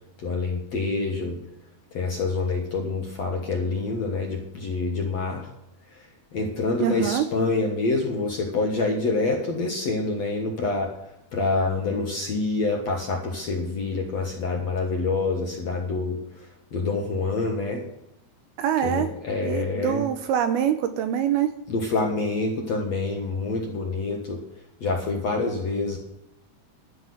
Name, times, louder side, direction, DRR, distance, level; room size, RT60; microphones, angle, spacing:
voice 1, 0.2-1.4 1.9-5.5 6.3-10.9 11.3-16.2 16.7-17.9 18.8-20.1 21.7-24.4 24.8-26.0, left 3 dB, 60° left, 0 dB, 1.9 m, -26 dB
voice 2, 6.8-7.3 18.6-19.1 19.4-21.5, right 9 dB, 75° right, 9 dB, 2.4 m, -24 dB
12.5 x 5.9 x 9.4 m, 0.84 s
omnidirectional pair, 4.9 m